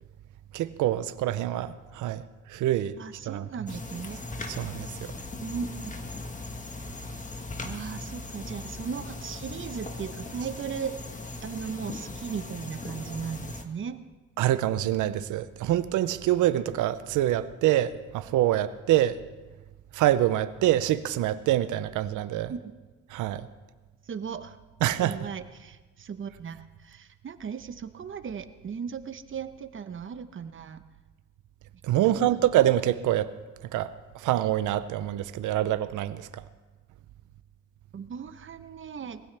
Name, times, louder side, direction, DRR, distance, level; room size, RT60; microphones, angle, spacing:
voice 1, 0.5-2.2 2.5-2.9 3.3-3.5 4.5-4.9 14.4-19.2 19.9-22.5 23.1-23.5 24.8-25.2 31.8-33.3 33.7-36.3, right 13 dB, 85° right, 13 dB, 0.7 m, -25 dB
voice 2, 3.0-4.2 5.4-6.0 7.6-11.0 11.4-14.0 22.5-22.7 24.1-24.6 25.0-30.8 32.0-32.5 37.9-39.2, right 6 dB, 40° right, 11 dB, 1.0 m, -37 dB
sound 1, 3.7-13.6, left 2 dB, 25° left, 1.5 m, -39 dB
21.0 x 15.5 x 3.4 m, 1.3 s
cardioid pair, 90°, 30 cm